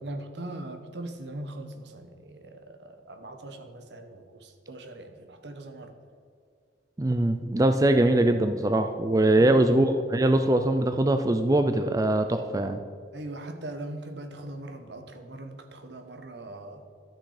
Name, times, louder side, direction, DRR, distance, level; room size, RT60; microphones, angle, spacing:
voice 1, 0.0-5.9 9.3-9.6 13.1-16.9, right 1 dB, 75° right, 6 dB, 1.1 m, -40 dB
voice 2, 7.0-12.8, right 1 dB, 20° right, 8 dB, 0.4 m, -22 dB
13.0 x 6.1 x 4.9 m, 2.3 s
head